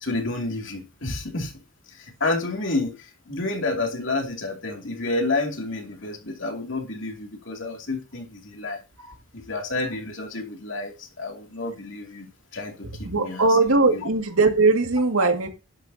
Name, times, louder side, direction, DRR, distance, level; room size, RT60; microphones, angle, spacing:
voice 1, 0.0-1.5 1.9-8.8 9.3-13.5 13.9-14.1 15.2-15.3, left 2 dB, 65° left, 2.7 m, -30 dB
voice 2, 13.0-15.5, right 3 dB, 90° right, 2.1 m, -20 dB
11.5 x 11.5 x 2.8 m
head